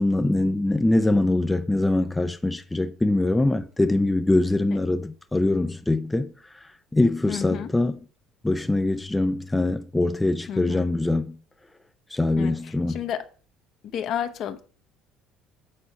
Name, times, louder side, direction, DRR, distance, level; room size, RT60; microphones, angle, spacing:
voice 1, 0.0-6.3 6.6-8.0 8.4-11.4 12.1-13.0, left 2 dB, 10° left, 0.5 m, -23 dB
voice 2, 7.3-7.7 10.5-10.8 12.4-12.5 12.9-13.2 13.9-14.6, left 9 dB, 55° left, 1.0 m, -30 dB
8.4 x 4.2 x 5.0 m
cardioid pair, 120°, 0 cm